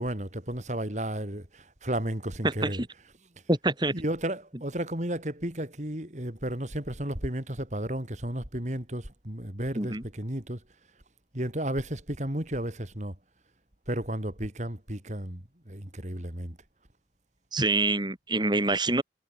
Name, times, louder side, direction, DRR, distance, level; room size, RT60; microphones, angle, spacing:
voice 1, 0.0-3.1 3.9-10.6 11.3-13.2 13.9-16.6, right 1 dB, 40° right, 3.7 m, -33 dB
voice 2, 3.5-3.9 9.7-10.0 17.5-19.0, right 2 dB, 25° right, 3.2 m, -26 dB
head